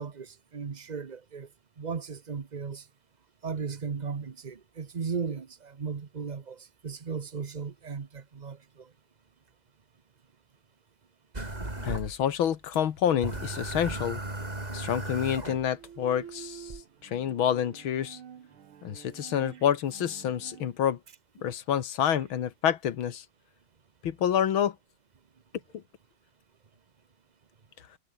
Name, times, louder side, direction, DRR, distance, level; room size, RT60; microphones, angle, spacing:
voice 1, 0.0-1.5 1.8-2.8 3.4-8.9, right 5 dB, 55° right, 0.4 m, -36 dB
sound 1, 11.3-12.5 12.7-12.8 13.2-15.9 16.7-16.8, right 2 dB, 20° right, 3.3 m, -36 dB
voice 2, 11.8-14.2 14.7-16.7 17.0-18.2 18.8-21.0 21.4-23.3 24.0-24.8, left 9 dB, 75° left, 2.1 m, -28 dB
Bowed string instrument, 15.7-20.7, right 9 dB, 80° right, 2.4 m, -48 dB
omnidirectional pair, 2.3 m